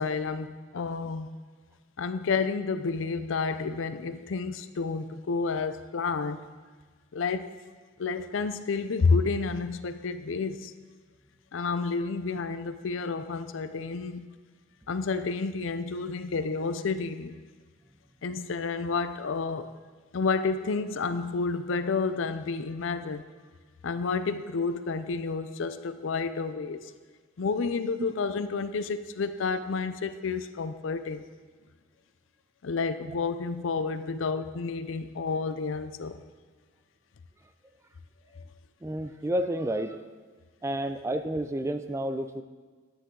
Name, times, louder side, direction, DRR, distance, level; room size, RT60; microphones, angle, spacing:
voice 1, 0.0-1.4 2.0-6.5 7.1-7.6 8.0-10.7 11.5-14.3 14.9-17.4 18.2-19.7 20.1-23.2 23.8-26.9 27.4-31.2 32.6-36.2 38.3-38.4, left 4 dB, 70° left, 11 dB, 0.5 m, -30 dB
voice 2, 38.8-40.0 40.6-42.4, right 1 dB, 15° right, 9 dB, 0.4 m, -30 dB
9.9 x 9.5 x 3.8 m, 1.5 s
head